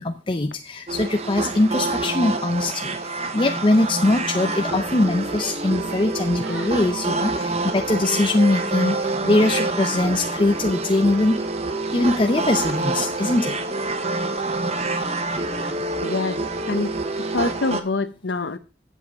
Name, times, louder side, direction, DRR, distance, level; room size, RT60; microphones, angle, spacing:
voice 1, 0.0-11.4 11.9-13.6, left 2 dB, 30° left, 6 dB, 0.6 m, -22 dB
sound 1, 0.9-17.8, right 2 dB, 35° right, 1.0 m, -27 dB
Human voice, 5.1-6.8 7.2-7.7 8.3-8.7 10.2-10.7 12.6-12.9 13.6-13.8 14.8-15.0 15.3-15.7 16.3-17.4, right 2 dB, 90° right, 3.4 m, -44 dB
voice 2, 16.0-16.4 16.7-17.0 17.3-18.6, left 3 dB, 80° left, 13 dB, 0.8 m, -25 dB
8.3 x 7.4 x 5.1 m, 0.35 s
head